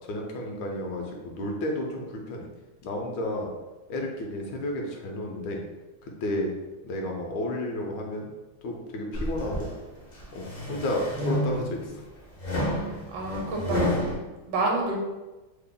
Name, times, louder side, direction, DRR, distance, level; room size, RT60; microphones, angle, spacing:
voice 1, 0.0-2.5 2.8-3.5 3.9-5.6 6.0-6.5 6.8-8.3 8.6-9.7 10.3-12.0, left 1 dB, 80° left, 1 dB, 1.3 m, -32 dB
sound 1, 9.1-9.7 10.2-11.8 12.4-14.1, left 1 dB, 60° left, 0.5 m, -29 dB
voice 2, 12.9-13.8 14.5-15.0, right 2 dB, 70° right, 0 dB, 1.3 m, -28 dB
3.4 x 2.0 x 3.6 m, 1.1 s
omnidirectional pair, 2.1 m